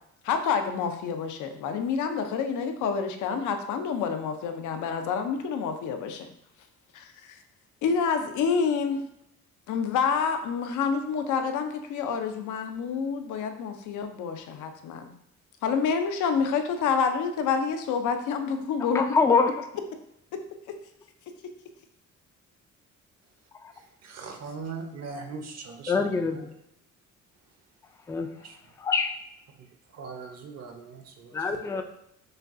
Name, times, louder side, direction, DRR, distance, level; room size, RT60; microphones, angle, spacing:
voice 1, 0.2-6.3 6.9-7.4 7.8-9.0 9.7-15.1 15.6-19.0, left 6 dB, 80° left, 6 dB, 0.6 m, -28 dB
voice 2, 18.9-19.5 25.9-26.5 28.1-28.3 28.8-29.1 31.3-31.8, left 4 dB, 10° left, 5 dB, 0.3 m, -24 dB
voice 3, 23.7-26.5 28.4-28.6 29.6-29.7 29.9-31.6, right 4 dB, 60° right, 4 dB, 0.8 m, -40 dB
6.3 x 2.3 x 2.6 m, 0.79 s
cardioid pair, 90°, 30 cm